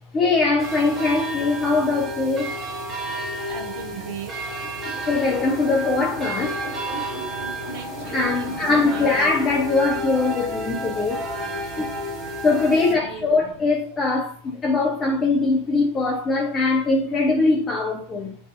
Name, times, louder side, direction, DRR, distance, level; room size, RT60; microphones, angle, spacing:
voice 1, 0.1-2.6 5.1-6.7 8.1-11.3 11.8-12.0 12.4-18.4, left 3 dB, 20° left, 0.5 m, -22 dB
sound 1, 0.6-12.9, right 1 dB, 25° right, 1.3 m, -31 dB
voice 2, 3.5-4.4 7.7-9.1 12.7-13.4, right 7 dB, 50° right, 0.7 m, -38 dB
sound 2, 4.5-9.3, left 1 dB, 40° left, 1.4 m, -36 dB
4.7 x 2.6 x 2.5 m
figure-of-eight pair, 90°, 0 cm